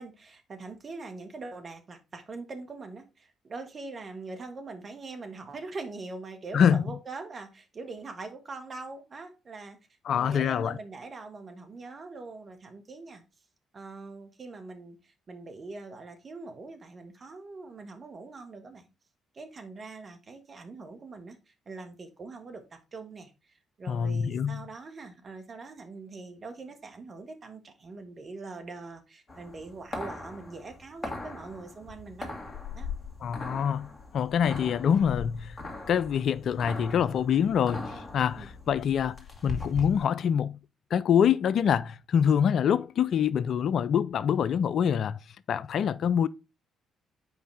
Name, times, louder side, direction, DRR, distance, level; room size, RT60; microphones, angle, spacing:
voice 1, 0.0-9.8 10.1-13.2 13.7-18.9 19.3-23.3 23.8-32.3 32.7-32.9 38.4-38.5, right 3 dB, 45° right, 1.7 m, -42 dB
voice 2, 10.1-10.8 23.9-24.6 33.2-33.9 34.1-35.6 35.9-40.6 40.9-45.2 45.5-46.3, left 8 dB, 60° left, 0.4 m, -25 dB
sound 1, 29.3-40.0, left 3 dB, 30° left, 2.0 m, -40 dB
7.8 x 5.1 x 3.3 m
hypercardioid pair, 45°, 0 cm